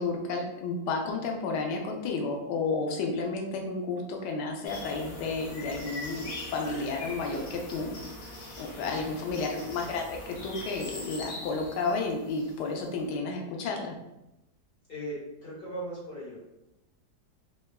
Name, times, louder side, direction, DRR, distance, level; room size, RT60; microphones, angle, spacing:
voice 1, 0.0-7.9 8.6-14.0, left 3 dB, 90° left, 2 dB, 1.2 m, -32 dB
sound 1, 4.6-12.9, left 1 dB, 70° left, 0.5 m, -42 dB
voice 2, 14.9-16.4, right 1 dB, 40° left, -8 dB, 1.2 m, -38 dB
3.7 x 2.2 x 2.2 m, 0.91 s
omnidirectional pair, 1.8 m